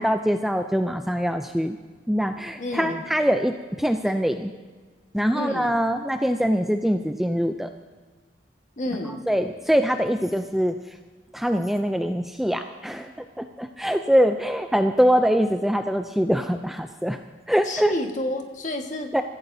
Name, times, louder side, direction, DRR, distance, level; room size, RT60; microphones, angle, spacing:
voice 1, 0.0-1.8 2.1-4.5 5.1-7.7 9.3-10.8 11.3-13.1 13.4-17.2 17.5-17.9 19.1-19.2, equal, ahead, 6 dB, 0.4 m, -23 dB
voice 2, 2.6-3.1 5.3-5.7 8.8-9.2 17.6-19.1, left 1 dB, 40° left, 3 dB, 1.5 m, -30 dB
24.5 x 15.0 x 2.7 m, 1.4 s
head